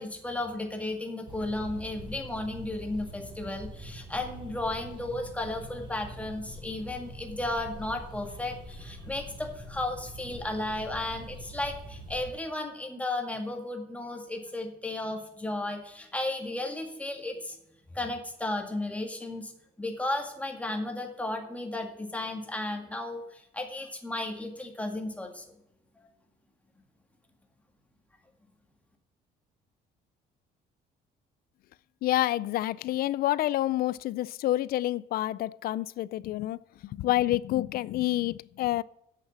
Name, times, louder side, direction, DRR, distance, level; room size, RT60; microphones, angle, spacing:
voice 1, 0.0-17.6 17.9-19.5 19.8-25.5, left 2 dB, 10° left, 1.9 m, -34 dB
sound 1, 1.3-12.3, equal, 30° right, 3.5 m, -44 dB
voice 2, 32.0-38.8, left 15 dB, 60° left, 0.4 m, -28 dB
8.3 x 6.6 x 7.3 m
cardioid pair, 110°, 17 cm